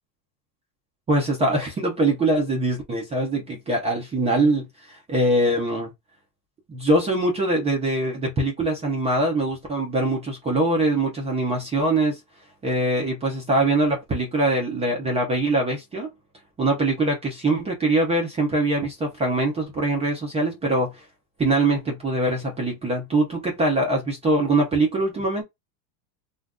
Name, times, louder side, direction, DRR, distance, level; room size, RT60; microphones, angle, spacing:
voice 1, 1.1-5.9 6.7-12.2 12.6-16.1 16.6-21.0 21.4-25.4, right 2 dB, 15° right, 0.6 m, -23 dB
2.5 x 2.4 x 3.5 m
supercardioid pair, 155°, 48 cm